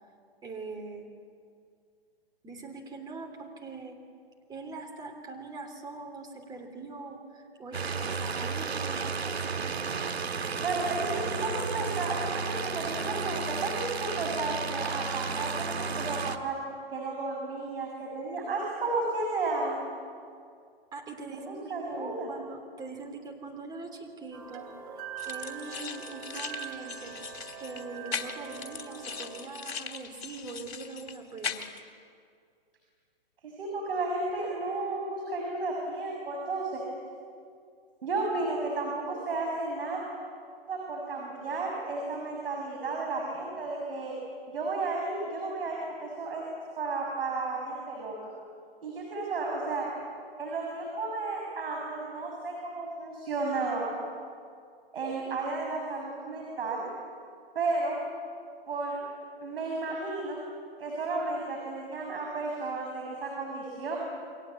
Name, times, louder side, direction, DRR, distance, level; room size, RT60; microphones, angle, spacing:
voice 1, 0.4-1.1 2.4-4.0 4.5-9.8 20.9-31.6, right 3 dB, 15° right, 3 dB, 3.2 m, -42 dB
sound 1, 7.7-16.4, right 5 dB, 90° right, 1.9 m, -32 dB
voice 2, 10.6-16.6 16.9-19.9 21.5-22.3 33.4-36.8 38.0-40.0 40.7-44.2 44.5-46.4 46.8-48.1 48.8-49.9 50.4-54.0 54.9-56.9 57.5-58.0 58.7-59.0 59.4-60.4 60.8-64.0, right 3 dB, 65° right, 0 dB, 6.7 m, -33 dB
sound 2, 24.3-29.4, right 8 dB, 35° right, 3.6 m, -42 dB
sound 3, 25.2-31.8, left 6 dB, 75° left, 3.0 m, -39 dB
29.0 x 23.5 x 8.4 m, 2.3 s
hypercardioid pair, 145°, 31 cm